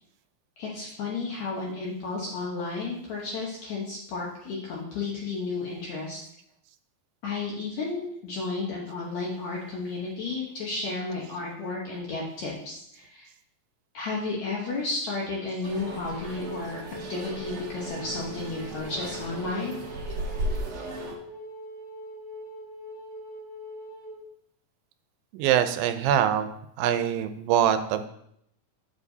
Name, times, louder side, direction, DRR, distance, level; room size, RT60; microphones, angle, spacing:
voice 1, 0.6-6.2 7.2-13.3 13.9-16.8 17.1-19.8, left 3 dB, 65° left, -3 dB, 2.0 m, -32 dB
sound 1, 15.6-21.2, right 1 dB, 55° right, 1.7 m, -36 dB
Wind instrument woodwind instrument, 15.7-24.2, right 1 dB, 45° left, 2.7 m, -42 dB
voice 2, 25.3-26.5 26.8-28.1, right 10 dB, 90° right, 9 dB, 2.4 m, -24 dB
8.7 x 7.0 x 2.7 m, 0.73 s
omnidirectional pair, 4.0 m